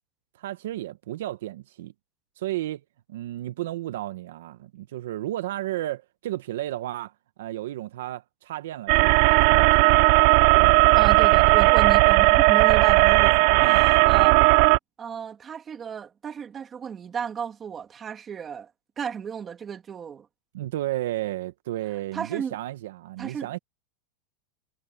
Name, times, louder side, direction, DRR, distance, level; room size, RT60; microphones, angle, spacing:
voice 1, 0.4-1.9 2.4-2.8 3.1-7.1 7.4-9.9 10.5-10.8 13.6-13.9 20.5-23.6, right 14 dB, 75° right, 0.8 m, -33 dB
sound 1, 8.9-14.8, right 26 dB, 45° right, 0.4 m, -17 dB
voice 2, 10.9-14.6 15.0-18.7 19.0-20.3 22.1-22.6 23.2-23.5, right 7 dB, 20° right, 2.5 m, -34 dB
supercardioid pair, 160°, 0 cm